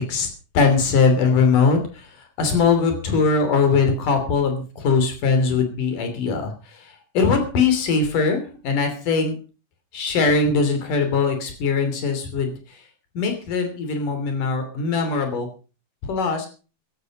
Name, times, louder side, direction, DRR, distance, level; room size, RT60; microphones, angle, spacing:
voice 1, 0.5-9.4 9.9-12.6 13.1-15.5 16.1-16.5, left 4 dB, 75° left, 6 dB, 4.5 m, -21 dB
15.5 x 11.5 x 5.2 m, 0.36 s
omnidirectional pair, 3.7 m